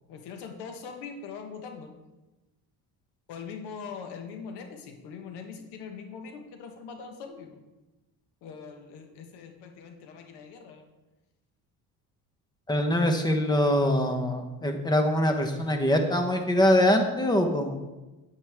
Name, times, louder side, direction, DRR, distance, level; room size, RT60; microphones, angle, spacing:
voice 1, 0.1-1.9 3.3-7.6 8.4-10.8, left 5 dB, 90° left, 5 dB, 1.4 m, -42 dB
voice 2, 12.7-17.8, left 1 dB, 10° left, 5 dB, 1.1 m, -23 dB
9.4 x 9.2 x 3.6 m, 1.1 s
cardioid pair, 105°, 39 cm